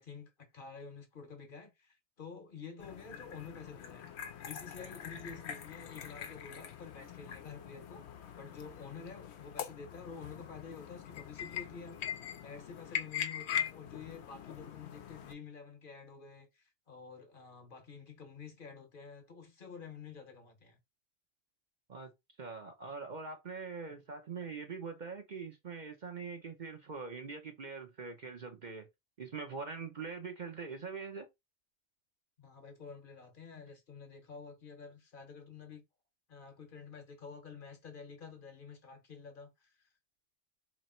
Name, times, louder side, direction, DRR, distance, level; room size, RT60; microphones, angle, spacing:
voice 1, 0.0-4.1 4.4-8.0 8.4-12.0 12.4-20.8 32.4-35.8 36.3-39.7, left 5 dB, 50° left, 1.0 m, -49 dB
sound 1, 2.8-15.3, left 9 dB, 70° left, 0.9 m, -42 dB
voice 2, 22.4-28.9 29.2-31.3, right 5 dB, 45° right, 0.7 m, -43 dB
3.0 x 3.0 x 4.2 m
omnidirectional pair, 1.2 m